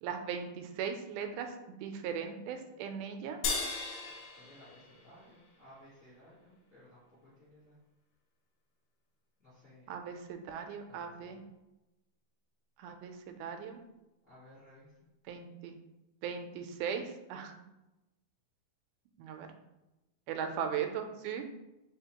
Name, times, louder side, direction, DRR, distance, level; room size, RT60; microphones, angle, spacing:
voice 1, 0.0-3.4 9.9-11.4 12.8-13.8 15.3-15.8 16.2-17.5 19.2-19.5 20.3-21.5, right 7 dB, 85° right, 5 dB, 2.1 m, -38 dB
sound 1, 3.4-6.0, left 4 dB, 80° left, 1.9 m, -38 dB
voice 2, 4.3-7.0 7.4-7.8 9.4-9.9 10.9-11.5 14.3-14.9, left 1 dB, 45° left, -11 dB, 1.0 m, -58 dB
4.3 x 3.8 x 2.8 m, 0.98 s
omnidirectional pair, 3.5 m